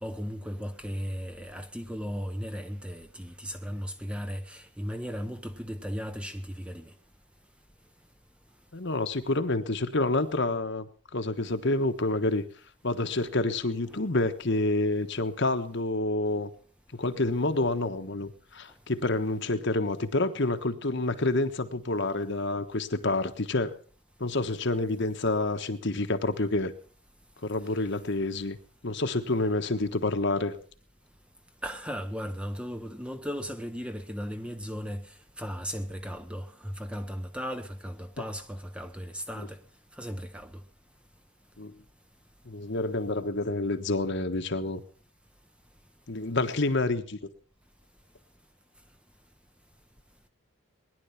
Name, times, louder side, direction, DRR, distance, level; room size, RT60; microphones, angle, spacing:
voice 1, 0.0-6.9 13.9-14.0 31.6-35.1 35.4-39.6 40.0-40.6, equal, 5° right, 0.9 m, -36 dB
voice 2, 8.7-12.5 12.8-16.5 16.9-23.8 24.2-26.7 27.4-28.6 28.8-30.6 41.6-41.7 42.5-44.8 46.1-47.2, left 2 dB, 55° left, 1.3 m, -28 dB
20.5 x 11.0 x 5.8 m
head